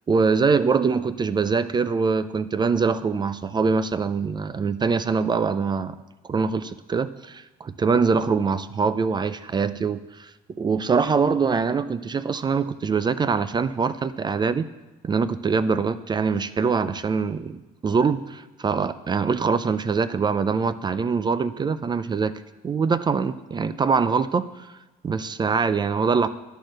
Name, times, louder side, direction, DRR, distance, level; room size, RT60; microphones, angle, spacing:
voice 1, 0.1-6.0 6.3-10.3 10.6-14.7 15.0-22.3 22.6-24.7 25.0-26.3, right 5 dB, 25° right, 14 dB, 0.4 m, -23 dB
10.5 x 6.2 x 6.4 m, 1.1 s
cardioid pair, 110°, 17 cm